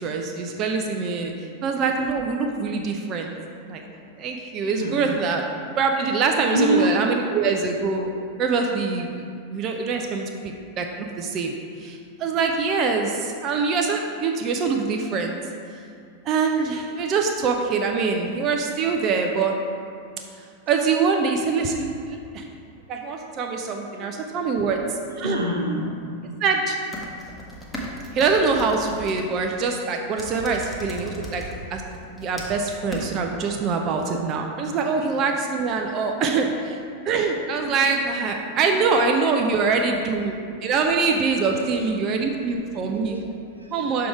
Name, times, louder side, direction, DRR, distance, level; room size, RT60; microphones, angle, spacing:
voice 1, 0.0-1.3 1.6-3.3 3.6-3.8 4.2-5.5 5.8-8.1 8.4-9.2 9.5-11.5 11.8-15.4 16.3-19.6 20.7-22.5 22.9-25.4 26.4-26.8 28.1-31.4 31.7-31.8 32.2-36.8 37.1-43.2 43.7-44.1, right 4 dB, 35° right, 2 dB, 0.4 m, -24 dB
voice 2, 4.6-5.0 6.5-7.0 11.0-11.1 16.8-17.1 23.7-24.7 25.2-26.0 30.4-30.5 31.2-31.5 37.6-37.7 38.4-38.8 41.4-41.9 42.2-42.3 42.6-43.8, right 1 dB, 85° right, -2 dB, 0.8 m, -29 dB
sound 1, 26.8-29.2 30.2-31.5 31.9-32.6 32.9-33.0, equal, 5° left, 1.0 m, -36 dB
6.1 x 3.4 x 4.7 m, 2.3 s
figure-of-eight pair, 90°, 0 cm